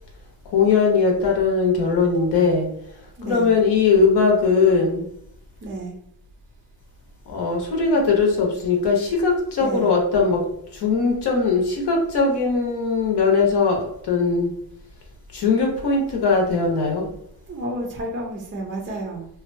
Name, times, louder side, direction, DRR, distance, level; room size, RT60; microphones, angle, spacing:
voice 1, 0.5-2.7 3.3-5.1 7.3-10.4 10.7-14.5 15.3-17.1, left 4 dB, 55° left, 0 dB, 0.8 m, -20 dB
voice 2, 3.2-3.5 5.6-5.9 9.3-9.9 17.5-19.3, right 1 dB, 25° right, 0 dB, 0.5 m, -31 dB
2.6 x 2.2 x 2.5 m, 0.72 s
cardioid pair, 115°, 47 cm